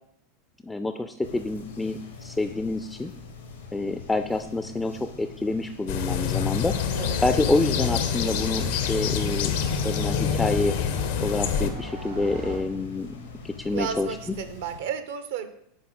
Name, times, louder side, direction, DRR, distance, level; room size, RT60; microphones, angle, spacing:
voice 1, 0.6-3.1 3.7-6.8 7.2-10.8 11.2-13.1 13.4-14.1, left 2 dB, 10° left, 9 dB, 0.3 m, -27 dB
sound 1, 1.2-14.8, left 4 dB, 80° left, 0.9 m, -44 dB
sound 2, 5.9-11.7, left 7 dB, 60° left, 0.5 m, -26 dB
sound 3, 6.7-12.6, left 1 dB, 90° right, 2.1 m, -37 dB
voice 2, 13.7-15.5, right 7 dB, 65° right, 10 dB, 0.5 m, -32 dB
6.4 x 4.2 x 3.8 m, 0.72 s
figure-of-eight pair, 80°, 0 cm